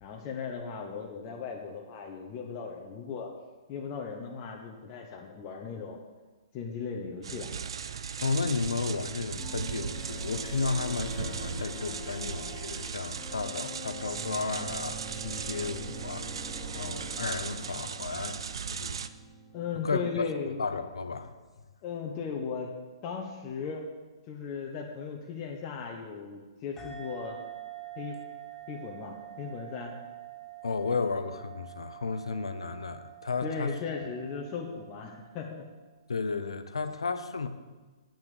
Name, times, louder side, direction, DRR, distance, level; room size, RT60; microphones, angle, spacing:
voice 1, 0.0-3.3 3.7-6.0 6.5-7.5 19.5-20.6 21.8-22.7 23.0-23.8 24.3-27.4 28.0-28.2 28.7-29.9 33.4-35.6, left 5 dB, 35° left, 0 dB, 1.1 m, -37 dB
sound 1, 7.2-19.1, right 7 dB, 65° right, 0.5 m, -38 dB
voice 2, 8.2-16.3 16.7-18.4 18.7-19.0 19.7-20.3 20.6-21.3 30.6-33.7 36.1-37.5, left 4 dB, 75° left, 10 dB, 0.8 m, -33 dB
sound 2, 9.4-21.0, equal, 10° right, 2.6 m, -44 dB
sound 3, 26.8-35.8, right 11 dB, 10° left, 1.6 m, -46 dB
8.7 x 6.1 x 7.8 m, 1.3 s
figure-of-eight pair, 120°, 3 cm